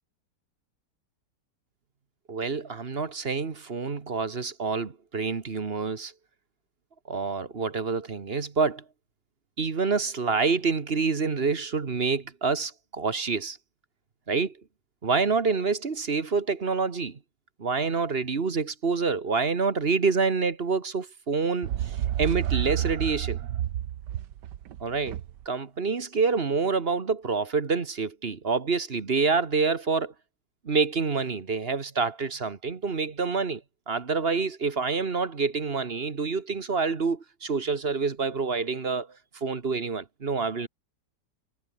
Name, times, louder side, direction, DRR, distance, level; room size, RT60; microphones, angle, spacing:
voice 1, 2.3-6.1 7.1-8.8 9.6-13.6 14.3-14.6 15.0-17.2 17.6-23.4 24.8-25.2 25.4-30.1 30.6-33.6 33.9-39.1 39.3-40.7, right 4 dB, 35° right, 1.6 m, -27 dB
sound 1, 21.6-25.4, right 11 dB, 75° right, 1.5 m, -30 dB
omnidirectional pair, 1.9 m